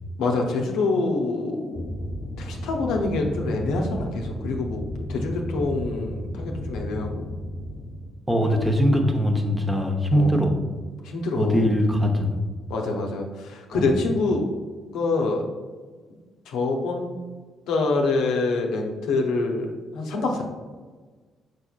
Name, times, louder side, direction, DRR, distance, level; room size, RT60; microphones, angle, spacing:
voice 1, 0.2-1.9 2.4-4.8 5.1-7.3 10.1-10.4 11.0-11.7 12.7-14.5 14.9-15.4 16.5-17.1 17.7-19.7 19.9-20.4, left 3 dB, 70° left, 1 dB, 0.6 m, -26 dB
sound 1, 1.7-8.1, left 1 dB, 15° left, 1.0 m, -33 dB
voice 2, 8.3-10.6 11.4-12.4 13.7-13.8, equal, 15° right, 3 dB, 0.8 m, -21 dB
4.8 x 4.4 x 2.3 m, 1.4 s
hypercardioid pair, 50°, 0 cm